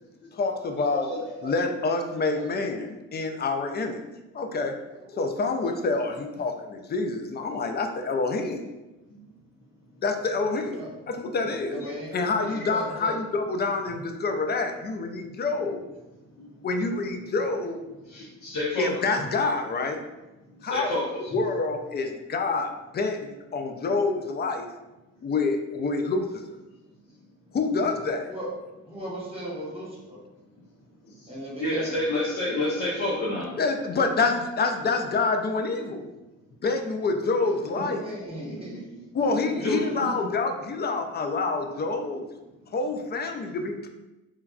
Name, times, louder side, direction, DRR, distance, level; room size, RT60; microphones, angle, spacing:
voice 1, 0.3-4.0 4.3-4.8 5.2-8.6 10.0-10.8 11.1-11.7 12.1-15.8 16.6-17.8 18.8-20.0 20.6-20.9 21.3-24.7 25.2-26.4 27.5-28.3 33.6-36.1 36.6-38.0 39.1-42.3 42.7-43.9, left 3 dB, 30° left, 5 dB, 0.4 m, -27 dB
voice 2, 0.9-1.6 2.4-2.5 9.1-9.2 11.7-11.9 16.4-16.5 18.0-18.9 20.6-21.4 31.2-31.3 31.6-33.5 38.4-38.6 39.4-40.3, left 1 dB, 65° left, -6 dB, 0.8 m, -30 dB
voice 3, 11.7-12.1 12.4-13.1 28.3-28.5 28.8-29.9 31.3-32.0 37.4-38.8, equal, 15° right, -6 dB, 1.1 m, -37 dB
3.2 x 2.2 x 2.4 m, 1.0 s
cardioid pair, 70°, 33 cm